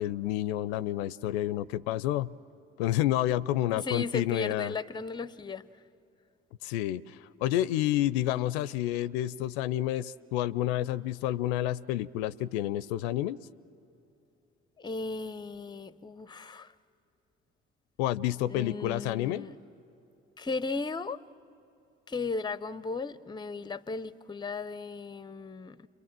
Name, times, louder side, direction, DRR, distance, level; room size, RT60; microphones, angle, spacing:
voice 1, 0.0-2.4 2.8-4.7 6.6-13.4 18.0-19.5, left 13 dB, 75° left, 0.5 m, -29 dB
voice 2, 3.7-5.7 14.8-16.7 18.5-19.6 20.4-21.2 22.1-25.9, left 4 dB, 15° left, 0.6 m, -36 dB
29.5 x 23.0 x 7.5 m
hypercardioid pair, 50°, 32 cm